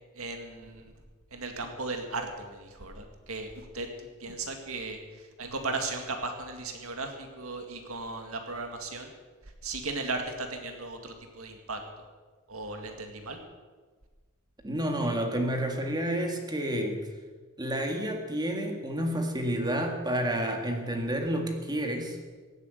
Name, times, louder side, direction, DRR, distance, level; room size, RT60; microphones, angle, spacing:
voice 1, 0.2-0.9 1.3-3.9 4.2-5.0 5.4-9.1 9.6-11.8 12.5-13.4, right 3 dB, 75° right, 5 dB, 2.0 m, -36 dB
voice 2, 14.6-17.0 17.6-22.2, right 1 dB, 20° right, 3 dB, 1.9 m, -30 dB
16.5 x 9.2 x 7.9 m, 1.4 s
head